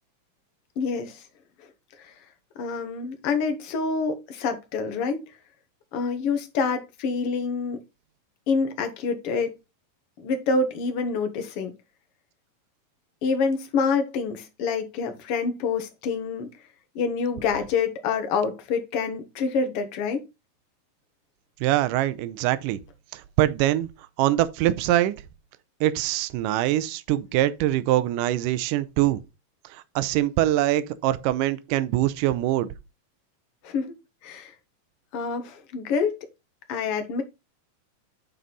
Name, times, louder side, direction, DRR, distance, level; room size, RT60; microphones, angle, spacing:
voice 1, 0.8-1.2 2.0-2.1 2.6-5.2 5.9-7.8 8.5-9.5 10.2-11.7 13.2-16.5 16.9-20.2 33.6-33.9 34.2-34.5 35.1-36.1 36.7-37.2, left 5 dB, 60° left, 1.7 m, -27 dB
voice 2, 21.6-22.8 23.1-23.9 24.2-25.1 25.8-29.2 29.7-32.7, right 14 dB, 80° right, 2.1 m, -23 dB
9.3 x 4.2 x 4.0 m
omnidirectional pair, 4.0 m